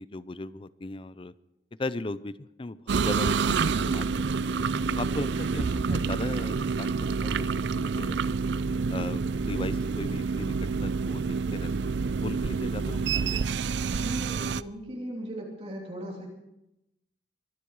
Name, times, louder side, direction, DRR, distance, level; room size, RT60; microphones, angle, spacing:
voice 1, 0.0-1.3 1.8-4.1 4.4-4.5 5.0-8.2 8.9-10.6 10.8-12.0 12.2-13.5, left 2 dB, 30° left, 16 dB, 0.5 m, -37 dB
sound 1, 2.9-14.6, right 5 dB, 65° right, 0.5 m, -28 dB
voice 2, 13.9-16.3, equal, 35° right, -2 dB, 3.0 m, -38 dB
24.0 x 11.5 x 4.8 m, 0.87 s
head